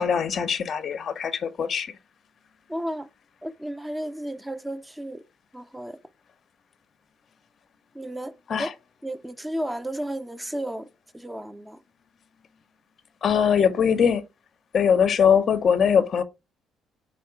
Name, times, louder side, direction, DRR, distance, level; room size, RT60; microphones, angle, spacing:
voice 1, 0.0-1.9 8.5-8.7 13.2-14.2 14.7-16.2, left 7 dB, 50° left, 0.5 m, -21 dB
voice 2, 2.7-3.1 3.4-5.2 5.5-6.0 7.9-8.3 8.6-8.7 9.0-10.9 11.1-11.8, right 1 dB, 10° right, 0.4 m, -33 dB
3.6 x 2.1 x 4.3 m
cardioid pair, 105°, 0 cm